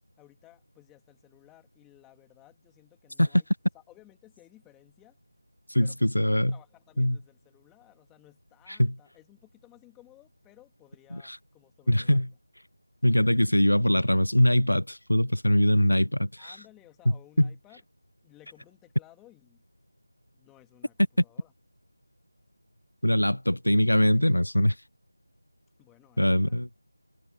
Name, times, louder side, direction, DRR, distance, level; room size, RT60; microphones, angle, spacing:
voice 1, 0.2-3.5 3.7-5.2 5.8-12.3 16.4-17.8 18.2-19.6 20.3-21.0 21.2-21.5 25.8-26.6, left 17 dB, 5° left, 2.4 m, -57 dB
voice 2, 5.7-6.5 7.0-7.2 8.8-8.9 11.1-11.4 11.9-12.3 13.0-16.5 17.4-17.5 23.0-24.7 26.2-26.7, left 1 dB, 85° left, 0.5 m, -22 dB
figure-of-eight pair, 170°, 0 cm